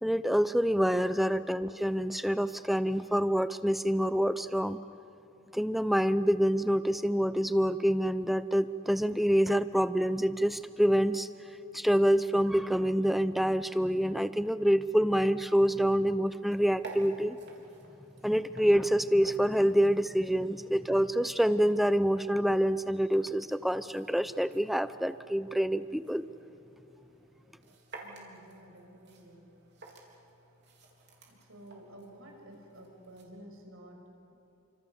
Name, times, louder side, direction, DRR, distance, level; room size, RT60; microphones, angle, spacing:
voice 1, 0.0-4.8 5.5-11.3 11.7-17.4 18.2-26.2, equal, ahead, 13 dB, 0.5 m, -27 dB
sound 1, 16.2-33.2, right 2 dB, 50° right, 3.9 m, -54 dB
voice 2, 28.0-29.5 31.3-34.0 34.3-34.4, right 1 dB, 75° right, 1 dB, 5.9 m, -52 dB
30.0 x 25.5 x 7.1 m, 2.9 s
head